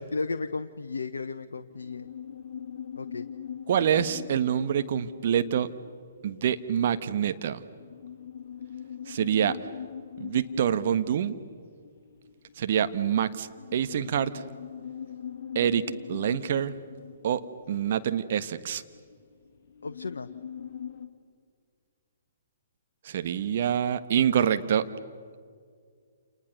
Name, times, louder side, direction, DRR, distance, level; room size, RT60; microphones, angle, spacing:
voice 1, 0.1-2.1 3.0-3.3 19.8-20.3, left 4 dB, 70° left, 9 dB, 0.9 m, -34 dB
sound 1, 1.7-21.1, left 8 dB, 45° left, 2.6 m, -42 dB
voice 2, 3.7-5.7 6.2-7.6 9.1-9.6 10.2-11.3 12.6-14.3 15.5-16.7 17.2-18.8 23.0-24.9, right 9 dB, 50° right, 10 dB, 1.4 m, -26 dB
29.0 x 29.0 x 6.8 m, 2.1 s
figure-of-eight pair, 125°, 0 cm